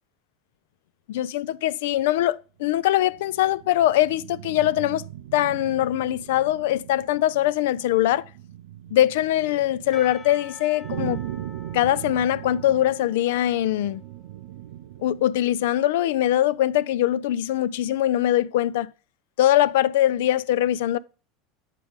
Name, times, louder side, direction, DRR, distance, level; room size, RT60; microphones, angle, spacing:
voice 1, 1.1-5.0 5.3-8.2 8.9-11.2 11.7-14.0 15.0-18.9 19.4-21.0, left 13 dB, 80° left, 0.3 m, -22 dB
sound 1, 2.8-15.4, right 12 dB, 85° right, 0.4 m, -39 dB
Percussion / Church bell, 9.9-14.7, left 2 dB, 5° right, 0.6 m, -48 dB
7.4 x 4.7 x 3.6 m
supercardioid pair, 130°, 0 cm